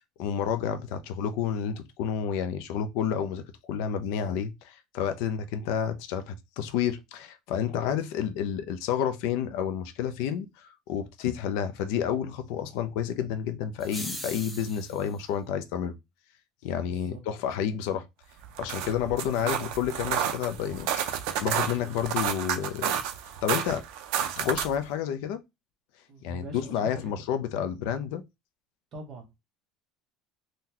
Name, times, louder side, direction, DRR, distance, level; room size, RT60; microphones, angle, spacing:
voice 1, 0.2-3.4 3.7-15.9 16.6-18.0 18.6-23.0 23.4-23.8 24.4-25.4 26.2-28.2, left 8 dB, 65° left, 0.4 m, -30 dB
sound 1, 13.8-15.1, equal, ahead, 0.4 m, -39 dB
voice 2, 16.9-17.2 19.4-19.6 26.1-27.1 28.9-29.4, right 2 dB, 35° right, 1.0 m, -43 dB
sound 2, 18.4-24.8, right 9 dB, 65° right, 0.4 m, -31 dB
3.8 x 2.2 x 2.8 m
cardioid pair, 175°, 0 cm